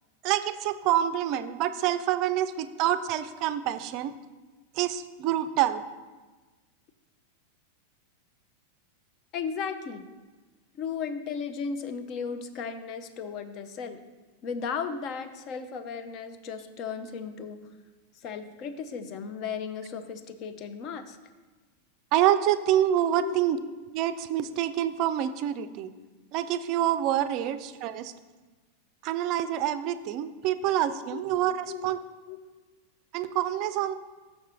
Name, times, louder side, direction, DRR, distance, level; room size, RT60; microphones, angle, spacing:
voice 1, 0.2-4.1 4.7-5.8 22.1-23.6 23.9-25.9 26.3-28.1 29.0-32.0 33.1-33.9, right 11 dB, 40° right, 12 dB, 0.4 m, -27 dB
voice 2, 9.3-10.0 10.7-14.0 14.4-17.6 18.2-21.2 23.2-23.4 31.1-31.2 31.6-31.9 32.3-32.4, left 6 dB, 40° left, 10 dB, 0.6 m, -35 dB
6.3 x 5.9 x 4.4 m, 1.3 s
figure-of-eight pair, 90°, 0 cm